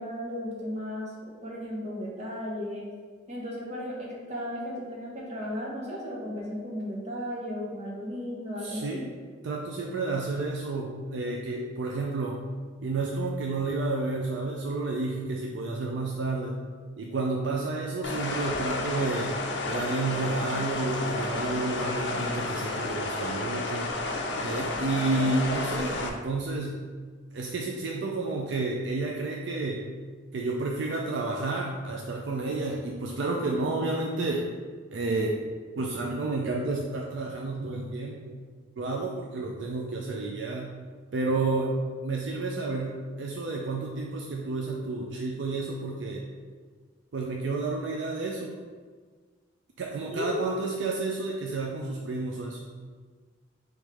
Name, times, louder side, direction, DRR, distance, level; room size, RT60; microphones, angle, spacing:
voice 1, 0.0-2.8 3.3-9.1 50.1-50.5, equal, 35° right, -4 dB, 1.0 m, -35 dB
voice 2, 8.6-9.1 9.4-12.4 12.8-16.6 17.0-19.3 19.7-23.9 24.4-26.8 27.3-29.9 30.3-34.4 34.9-35.4 35.8-38.5 38.8-40.8 41.1-41.7 42.0-46.2 47.1-48.5 49.8-52.6, right 3 dB, 65° right, -1 dB, 0.4 m, -30 dB
sound 1, 18.0-26.1, left 2 dB, 65° left, 0.5 m, -31 dB
3.4 x 3.1 x 4.8 m, 1.5 s
head